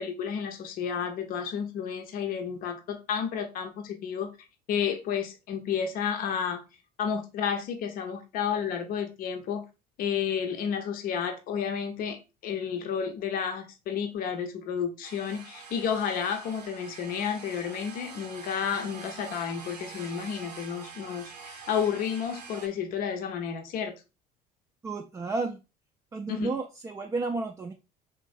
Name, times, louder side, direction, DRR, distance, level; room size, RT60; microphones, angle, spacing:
voice 1, 0.0-4.3 4.7-6.6 7.0-9.7 10.0-23.9 26.3-26.5, left 7 dB, 45° left, 0.7 m, -31 dB
sound 1, 15.0-22.7, right 5 dB, 85° right, 0.6 m, -45 dB
voice 2, 24.8-25.6 26.1-27.7, right 3 dB, 15° right, 0.3 m, -32 dB
3.7 x 3.0 x 2.5 m
figure-of-eight pair, 60°, 20 cm